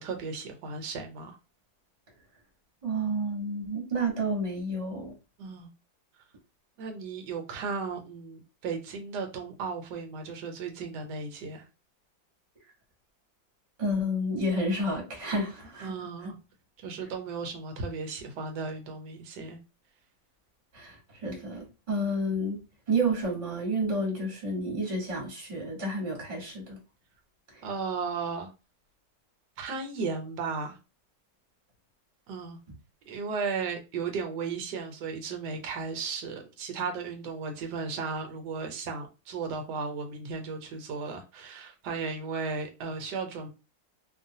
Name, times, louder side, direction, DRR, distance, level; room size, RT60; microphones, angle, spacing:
voice 1, 0.0-1.3 5.4-5.7 6.8-11.6 15.8-16.4 16.8-19.6 27.6-28.5 29.6-30.8 32.3-32.6 33.1-43.5, right 4 dB, 65° right, 1.2 m, -35 dB
voice 2, 2.8-5.1 13.8-16.0 16.2-16.3 20.7-22.6 22.9-26.8 27.5-27.6, right 1 dB, 30° right, 0.9 m, -30 dB
3.0 x 2.3 x 2.6 m
omnidirectional pair, 2.1 m